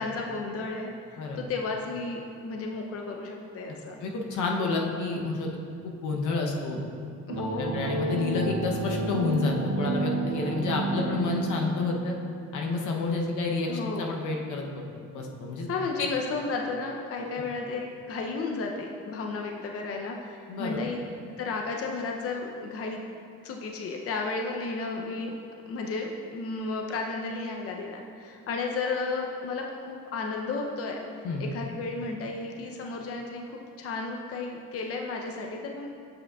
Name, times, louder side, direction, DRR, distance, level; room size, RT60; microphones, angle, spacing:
voice 1, 0.0-4.0 7.3-7.9 13.7-14.2 15.7-21.0 21.4-23.0 23.4-25.3 25.6-31.0 31.4-35.9, left 3 dB, 50° left, 1 dB, 0.6 m, -33 dB
voice 2, 4.0-5.5 5.8-6.8 7.6-12.2 12.5-13.7 14.0-14.7 15.1-15.7 17.2-17.3 20.5-20.8 31.2-31.4, left 3 dB, 80° left, 1 dB, 0.8 m, -29 dB
sound 1, 7.3-11.8, right 3 dB, 60° right, 0.8 m, -31 dB
8.0 x 6.1 x 2.3 m, 2.4 s
cardioid pair, 90°, 30 cm